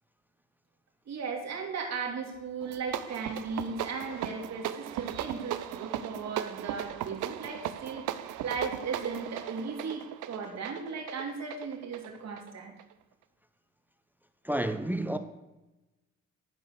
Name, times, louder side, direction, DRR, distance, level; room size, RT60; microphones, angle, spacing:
voice 1, 1.1-12.7, right 5 dB, 60° right, 2.9 m, -37 dB
sound 1, 2.6-12.9, right 11 dB, 90° right, 0.7 m, -37 dB
voice 2, 14.4-15.2, right 1 dB, 5° right, 0.8 m, -30 dB
12.5 x 5.4 x 6.7 m
cardioid pair, 90°, 30 cm